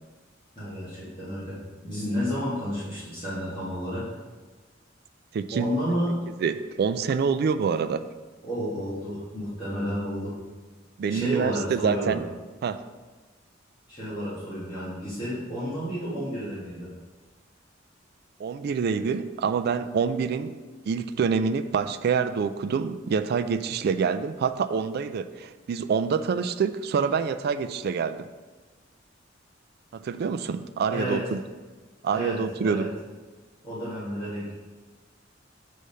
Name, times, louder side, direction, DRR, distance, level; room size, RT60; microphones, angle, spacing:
voice 1, 0.5-4.1 5.5-6.2 8.4-10.4 11.1-12.2 13.9-16.9 30.9-31.2 32.1-32.9 33.6-34.5, equal, 25° left, -11 dB, 1.6 m, -31 dB
voice 2, 5.3-5.7 6.4-8.1 11.0-12.2 12.6-12.8 18.4-20.6 20.9-28.2 29.9-31.4 32.0-32.8, right 6 dB, 55° right, 10 dB, 0.3 m, -26 dB
6.3 x 3.4 x 5.5 m, 1.3 s
head